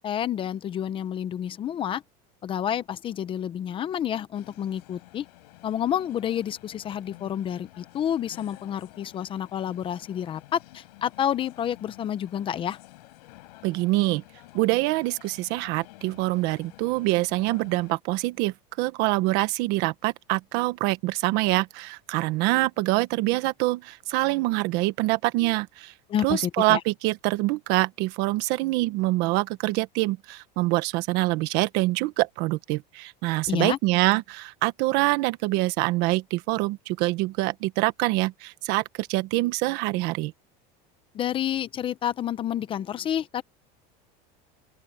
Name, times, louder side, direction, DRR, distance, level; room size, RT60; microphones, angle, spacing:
voice 1, 0.0-2.0 2.4-5.3 5.6-12.8 26.1-26.8 33.5-33.8 41.1-43.4, left 10 dB, 25° left, 0.7 m, -29 dB
sound 1, 4.3-18.0, left 21 dB, 85° left, 7.0 m, -51 dB
voice 2, 13.6-14.2 14.5-25.9 26.2-40.3, right 20 dB, 55° right, 1.3 m, -25 dB
open air
cardioid pair, 160°, 21 cm